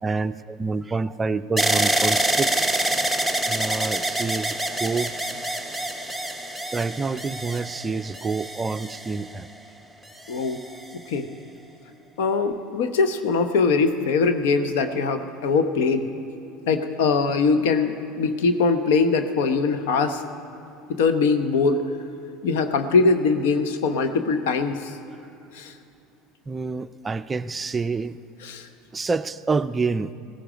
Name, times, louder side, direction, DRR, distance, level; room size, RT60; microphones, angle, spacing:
voice 1, 0.0-2.8 3.5-5.2 6.7-9.5 26.5-28.2 28.9-30.1, right 4 dB, 20° right, 13 dB, 0.4 m, -27 dB
sound 1, 1.6-9.6 10.3-10.9, right 1 dB, ahead, 0.9 m, -26 dB
voice 2, 10.3-10.6 11.1-11.3 12.2-16.1 16.7-20.2 20.9-21.8 22.4-24.9 25.5-25.7 28.4-28.7, left 4 dB, 75° left, 9 dB, 0.9 m, -22 dB
16.5 x 15.5 x 5.0 m, 2.8 s
hypercardioid pair, 85°, 0 cm